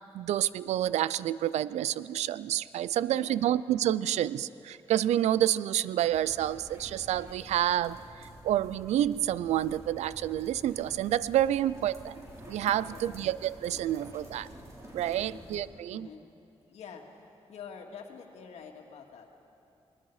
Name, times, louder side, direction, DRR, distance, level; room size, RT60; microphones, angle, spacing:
voice 1, 0.1-14.5 14.9-16.1, right 12 dB, 90° right, 18 dB, 0.4 m, -29 dB
voice 2, 3.0-3.6 12.8-13.3 15.2-15.5 15.9-16.2 16.7-17.1 17.5-19.5, left 6 dB, 85° left, 2 dB, 2.1 m, -47 dB
sound 1, 6.1-15.6, equal, 25° right, 5.0 m, -49 dB
28.5 x 20.0 x 4.9 m, 2.7 s
cardioid pair, 60°, 11 cm